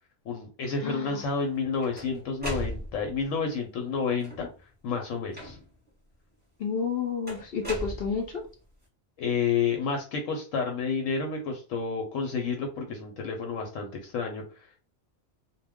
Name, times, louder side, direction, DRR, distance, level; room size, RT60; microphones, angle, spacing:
voice 1, 0.2-4.5 4.8-5.6 9.2-14.8, left 5 dB, 75° left, 3 dB, 0.9 m, -30 dB
voice 2, 0.8-1.2 6.6-8.4, left 5 dB, 60° left, 3 dB, 0.6 m, -30 dB
sound 1, 1.4-3.2 4.1-4.6 5.3-5.9 7.3-8.5, equal, 10° right, 0.9 m, -38 dB
2.2 x 2.2 x 3.4 m, 0.35 s
omnidirectional pair, 1.4 m